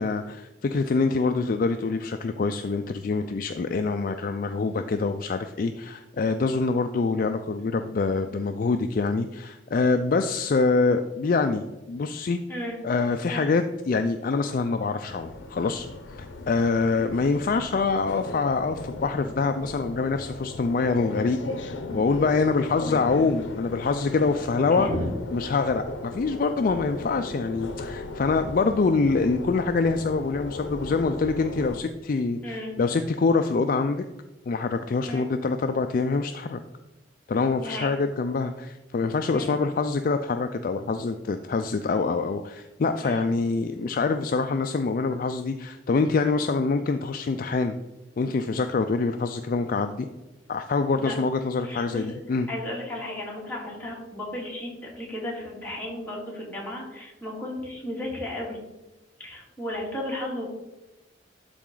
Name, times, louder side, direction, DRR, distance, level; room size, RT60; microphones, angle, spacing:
voice 1, 0.0-12.4 12.8-24.9 25.3-34.0 34.5-36.6 37.3-47.7 48.2-50.1 50.5-52.5, left 4 dB, 50° left, 7 dB, 0.4 m, -25 dB
sound 1, 15.1-31.8, left 2 dB, 85° left, 0.6 m, -37 dB
voice 2, 24.7-25.0 32.4-32.7 35.0-35.2 37.6-38.0 39.3-39.5 43.0-43.3 50.9-51.1 51.6-52.1 52.5-58.6 59.2-60.4, left 1 dB, 10° left, -5 dB, 2.3 m, -34 dB
12.0 x 4.2 x 3.8 m, 1.0 s
head